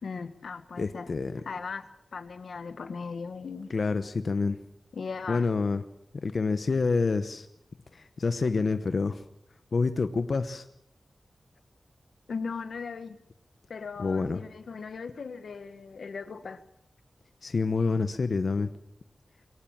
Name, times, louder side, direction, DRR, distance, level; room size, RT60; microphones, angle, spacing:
voice 1, 0.0-1.1 1.4-3.7 4.9-5.4 12.3-13.2 13.7-16.6, left 5 dB, 90° left, 10 dB, 1.7 m, -38 dB
voice 2, 0.8-1.4 3.7-4.6 5.3-5.8 6.2-7.5 7.9-9.2 9.7-10.6 14.0-14.4 17.4-18.7, left 4 dB, 60° left, 9 dB, 1.0 m, -27 dB
23.5 x 18.0 x 7.6 m, 0.72 s
wide cardioid pair, 120°, 0 cm